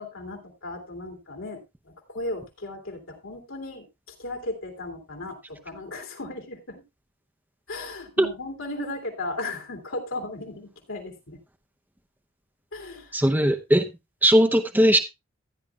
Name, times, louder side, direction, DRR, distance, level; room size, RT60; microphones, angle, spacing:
voice 1, 0.0-3.8 4.2-6.8 7.7-11.4 12.7-13.1, left 2 dB, 70° left, 2 dB, 3.0 m, -36 dB
voice 2, 13.1-13.9 14.2-15.0, equal, 10° right, 7 dB, 0.7 m, -19 dB
15.5 x 10.0 x 2.3 m, 0.24 s
head